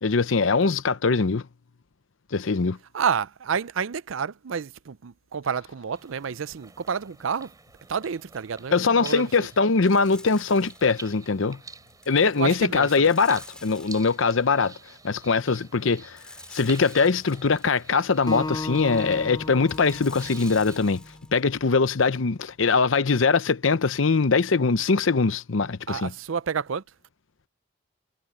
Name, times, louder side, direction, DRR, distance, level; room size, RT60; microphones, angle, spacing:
voice 1, 0.0-1.5 2.3-2.8 8.7-11.6 12.1-14.7 15.0-16.2 16.5-21.0 21.3-26.1, left 4 dB, 70° left, 0.7 m, -22 dB
voice 2, 2.9-7.5 7.9-9.3 12.4-13.1 25.9-26.8, right 6 dB, 70° right, 0.5 m, -29 dB
sound 1, 5.9-20.8, right 4 dB, 20° right, 3.8 m, -48 dB
sound 2, 9.8-11.2 11.9-14.4 16.2-17.9 19.7-21.4, left 1 dB, 5° left, 4.2 m, -48 dB
Acoustic guitar, 18.3-21.6, left 2 dB, 20° left, 0.6 m, -35 dB
head